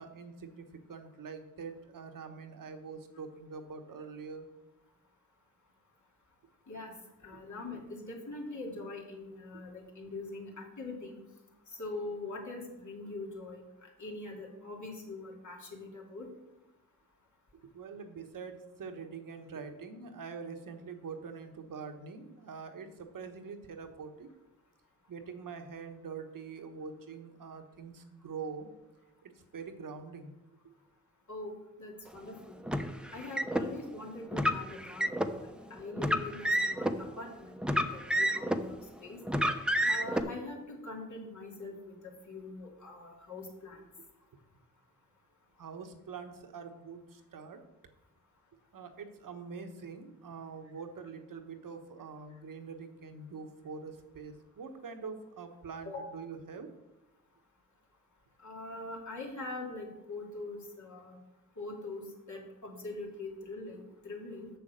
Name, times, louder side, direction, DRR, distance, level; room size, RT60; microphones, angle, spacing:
voice 1, 0.0-4.5 7.3-7.4 17.7-24.3 25.1-28.7 29.2-30.3 30.6-30.7 45.6-47.6 48.7-56.7, right 5 dB, 70° right, 7 dB, 1.2 m, -44 dB
voice 2, 7.2-11.2 11.7-13.6 14.0-16.3 31.3-32.6 33.1-39.2 39.8-42.0 42.3-43.8 55.8-56.0 58.4-61.2 61.6-64.5, left 2 dB, 60° left, -1 dB, 2.7 m, -43 dB
Car, 32.7-33.6 34.3-35.3 36.0-36.9 37.6-38.7 39.3-40.2, equal, 5° right, 0.9 m, -29 dB
6.9 x 6.8 x 6.4 m, 1.0 s
supercardioid pair, 40°, 34 cm